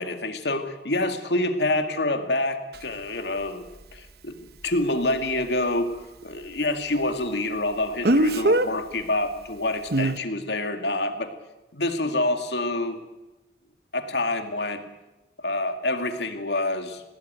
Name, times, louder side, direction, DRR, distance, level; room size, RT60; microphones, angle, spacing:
voice 1, 0.0-3.7 3.9-6.0 6.2-11.3 11.7-13.0 13.9-14.8 15.4-17.0, left 2 dB, 75° left, 7 dB, 2.2 m, -27 dB
Speech, 2.7-2.8 8.0-8.7 9.9-10.2, right 1 dB, 60° right, 1.0 m, -20 dB
21.5 x 17.5 x 9.2 m, 1.0 s
head